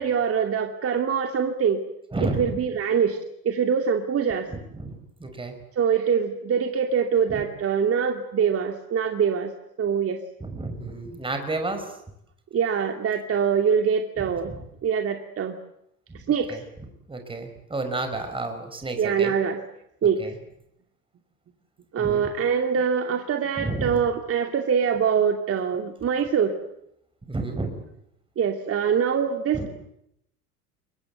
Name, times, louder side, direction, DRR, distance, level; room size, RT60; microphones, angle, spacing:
voice 1, 0.0-1.8 2.2-3.2 3.4-4.5 5.8-9.5 9.8-10.2 12.5-14.5 14.8-15.5 16.1-16.6 19.0-19.6 20.0-20.2 21.9-26.5 28.4-29.7, right 7 dB, 30° right, 5 dB, 2.6 m, -24 dB
voice 2, 2.1-2.5 4.5-5.6 7.3-7.4 10.4-11.9 14.5-14.6 16.5-16.6 17.1-19.3 20.2-20.3 22.0-22.2 23.6-23.9 27.3-27.7 29.5-29.7, right 2 dB, 10° right, 6 dB, 5.3 m, -31 dB
29.0 x 23.5 x 8.1 m, 0.79 s
figure-of-eight pair, 80°, 45 cm